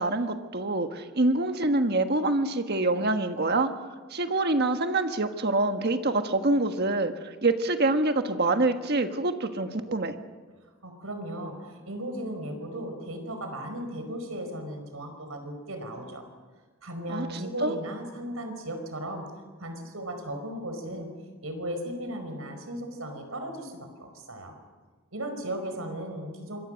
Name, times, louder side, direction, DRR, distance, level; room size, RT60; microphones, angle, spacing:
voice 1, 0.0-3.7 4.1-10.1 17.1-17.8, right 2 dB, 50° right, 7 dB, 1.5 m, -26 dB
voice 2, 10.8-16.3 16.8-19.2 19.6-21.1 21.4-24.5 25.1-26.6, right 1 dB, 85° right, 6 dB, 5.1 m, -36 dB
26.0 x 22.5 x 6.5 m, 1.4 s
head